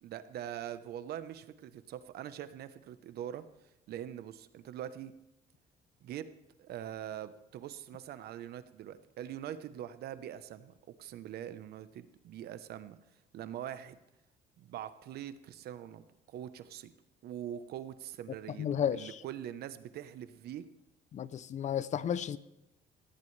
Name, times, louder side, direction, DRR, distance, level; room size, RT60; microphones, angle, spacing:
voice 1, 0.0-3.4 3.9-5.1 6.0-6.3 6.6-10.7 11.0-13.0 13.3-14.0 14.6-16.9 17.2-20.7, right 11 dB, 70° right, 1.0 m, -43 dB
voice 2, 18.6-19.1 21.1-22.4, left 9 dB, 45° left, 0.6 m, -32 dB
19.5 x 15.5 x 3.4 m
cardioid pair, 110°, 17 cm